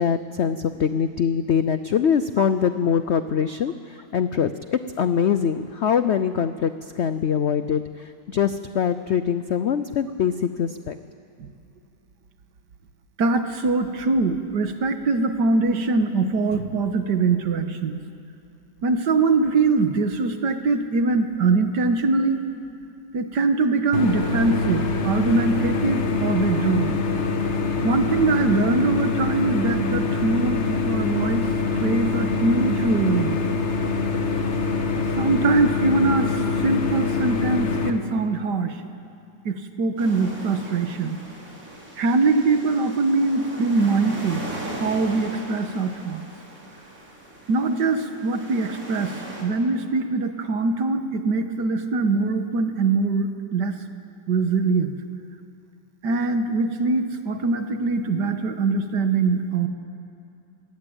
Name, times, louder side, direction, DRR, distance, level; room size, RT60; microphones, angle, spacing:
voice 1, 0.0-11.0, left 7 dB, 85° left, 11 dB, 0.6 m, -23 dB
voice 2, 13.2-18.0 18.8-22.4 23.1-27.0 27.8-31.5 31.8-33.4 35.1-38.8 39.5-41.2 42.0-44.4 44.8-46.2 47.5-53.8 54.3-55.0 56.0-59.7, right 3 dB, 70° right, 7 dB, 1.9 m, -22 dB
sound 1, 23.9-37.9, left 4 dB, 40° left, 1.5 m, -24 dB
sound 2, 40.0-49.4, right 1 dB, 45° right, 4.2 m, -38 dB
22.5 x 18.0 x 8.8 m, 2.6 s
omnidirectional pair, 2.0 m